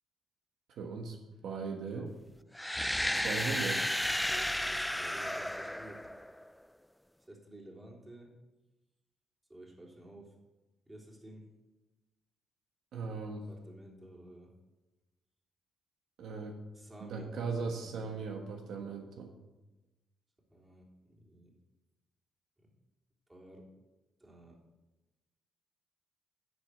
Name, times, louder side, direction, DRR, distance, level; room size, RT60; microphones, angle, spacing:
voice 1, 0.7-1.2 1.4-2.1 3.1-3.9 12.9-13.4 16.2-16.6 17.0-19.3, right 4 dB, 70° right, 3 dB, 1.5 m, -38 dB
sound 1, 2.5-6.5, left 1 dB, 5° left, 0.4 m, -33 dB
voice 2, 4.7-6.1 7.3-8.3 9.5-10.3 10.9-11.5 13.4-14.5 16.7-18.3 20.5-21.5 22.6-22.7 23.3-23.7 24.2-24.6, right 1 dB, 15° right, -2 dB, 3.5 m, -52 dB
11.0 x 6.6 x 8.3 m, 1.1 s
cardioid pair, 90°, 0 cm